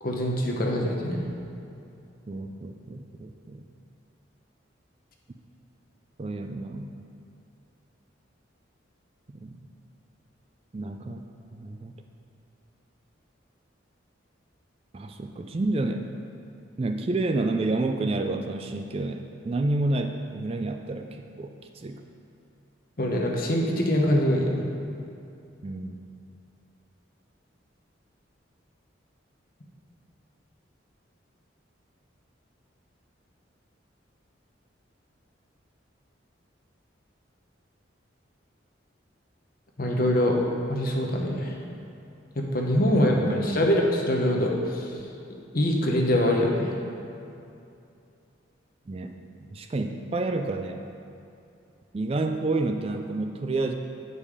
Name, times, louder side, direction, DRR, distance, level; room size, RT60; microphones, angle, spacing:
voice 1, 0.0-1.2 23.0-24.7 39.8-40.4 40.7-41.5 42.4-44.9 45.5-46.7, left 1 dB, 50° left, 0 dB, 0.9 m, -24 dB
voice 2, 2.3-3.6 6.2-6.9 9.3-9.6 10.7-11.2 11.5-11.9 14.9-16.0 16.8-22.0 25.6-26.0 42.9-43.7 48.9-49.1 49.5-50.8 51.9-53.7, right 2 dB, 30° right, 5 dB, 0.3 m, -29 dB
8.4 x 5.3 x 4.9 m, 2.6 s
head